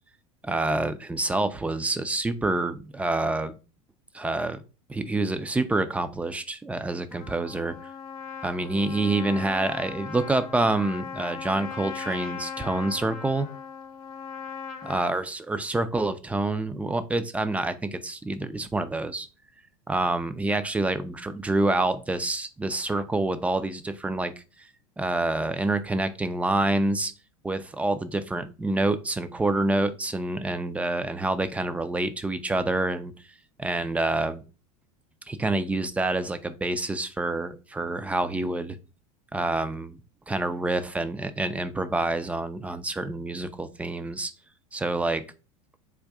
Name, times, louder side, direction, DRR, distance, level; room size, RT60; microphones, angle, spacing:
voice 1, 0.4-3.6 4.1-4.6 4.9-7.8 8.4-13.5 14.8-19.3 19.9-24.3 24.6-24.7 25.0-27.1 27.4-33.1 33.6-34.4 35.3-38.8 39.3-40.0 40.3-44.3 44.7-45.2, right 2 dB, 5° right, 11 dB, 0.3 m, -27 dB
Trumpet, 7.1-15.2, left 6 dB, 75° left, 0.7 m, -38 dB
3.6 x 2.6 x 3.3 m, 0.32 s
hypercardioid pair, 85°, 19 cm